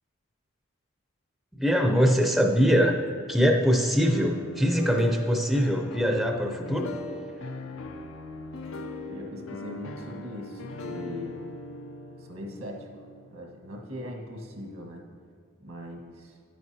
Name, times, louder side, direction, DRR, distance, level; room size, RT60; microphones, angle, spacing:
voice 1, 1.6-3.0 3.3-6.9, equal, ahead, 2 dB, 0.5 m, -23 dB
sound 1, 4.0-14.0, left 2 dB, 65° left, 0.6 m, -39 dB
voice 2, 9.1-11.4 12.2-13.0 13.3-15.0 15.6-16.4, left 1 dB, 90° right, 0 dB, 1.5 m, -40 dB
9.9 x 9.3 x 2.8 m, 2.3 s
head